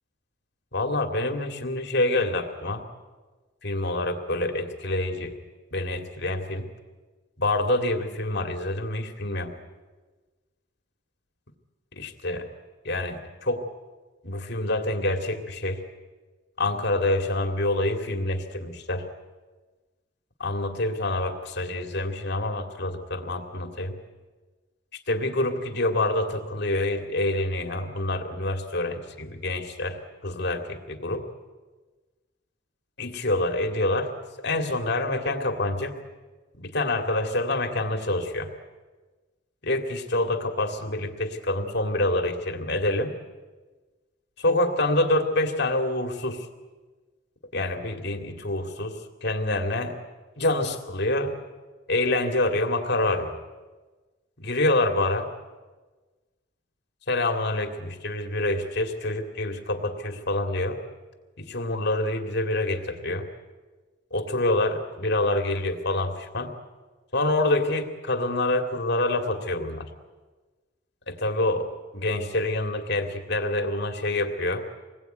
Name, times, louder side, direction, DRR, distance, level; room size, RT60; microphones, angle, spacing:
voice 1, 0.7-2.8 3.6-5.3 5.7-6.7 7.4-9.5 11.9-12.5 12.8-13.6 14.2-15.8 16.6-19.0 20.4-23.9 25.1-30.0 30.2-31.2 33.0-34.1 34.4-36.0 36.6-38.5 39.6-43.1 44.4-46.5 47.5-50.0 50.4-51.3 51.9-53.3 54.4-55.3 57.1-60.8 61.4-63.2 64.1-66.5 67.1-69.9 71.1-71.7 71.9-74.6, left 2 dB, 55° left, 5 dB, 2.6 m, -26 dB
26.5 x 21.0 x 9.3 m, 1.3 s
head